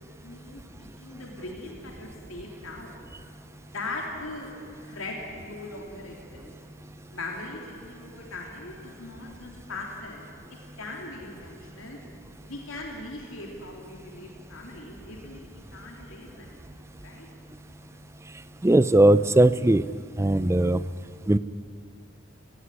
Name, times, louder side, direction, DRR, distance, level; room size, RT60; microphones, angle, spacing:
voice 1, 0.2-3.0 3.7-4.5 4.9-6.5 7.1-10.2 10.8-12.0 12.4-15.4 15.7-16.5 17.0-17.3, left 2 dB, 80° left, 0 dB, 3.4 m, -40 dB
voice 2, 18.6-19.9 20.2-20.8 21.3-21.4, right 1 dB, 15° right, 15 dB, 0.4 m, -19 dB
18.0 x 16.5 x 9.8 m, 2.5 s
head